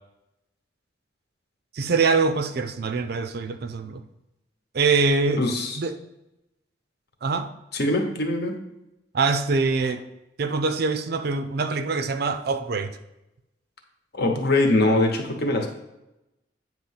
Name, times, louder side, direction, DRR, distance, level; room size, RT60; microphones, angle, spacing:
voice 1, 1.7-4.0 4.7-5.4 5.8-6.0 7.2-7.5 9.1-10.0 10.4-13.0, right 4 dB, 60° right, 0.5 m, -24 dB
voice 2, 5.4-5.8 7.7-8.6 14.1-15.7, left 2 dB, 60° left, 1.1 m, -22 dB
8.7 x 3.1 x 5.7 m
head